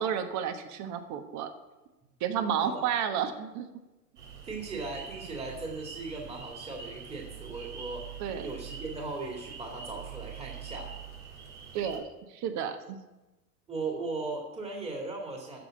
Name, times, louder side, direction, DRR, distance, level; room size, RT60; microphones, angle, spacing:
voice 1, 0.0-1.5 2.2-3.7 8.2-8.5 11.7-12.1 12.3-13.0, right 8 dB, 35° right, 9 dB, 1.3 m, -31 dB
sound 1, 4.2-12.0, right 7 dB, 70° right, 3.2 m, -44 dB
voice 2, 4.4-8.1 8.4-10.9 13.7-15.6, right 3 dB, 10° right, -1 dB, 2.2 m, -37 dB
13.5 x 5.1 x 7.5 m, 1.1 s
hypercardioid pair, 105°, 48 cm